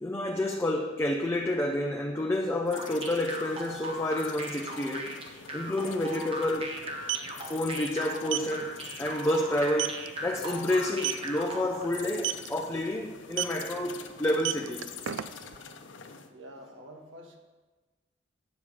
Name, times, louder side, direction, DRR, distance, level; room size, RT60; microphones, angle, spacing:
voice 1, 0.0-5.2 5.5-6.8 7.5-14.9, left 1 dB, 15° left, 1 dB, 0.6 m, -29 dB
sound 1, 2.7-16.3, left 6 dB, 75° left, 0.7 m, -46 dB
sound 2, 2.7-11.9, right 1 dB, 30° right, 1.0 m, -38 dB
sound 3, 5.3-5.4 5.6-5.8 6.8-7.3 8.3-8.5 8.9-9.1 9.4-9.5 9.8-10.1 10.9-11.3 12.1-12.5 13.3-13.6 14.3-15.6, right 13 dB, 70° right, 0.4 m, -30 dB
voice 2, 16.3-17.4, equal, 85° right, 3 dB, 1.4 m, -47 dB
9.1 x 7.2 x 4.8 m, 1.3 s
head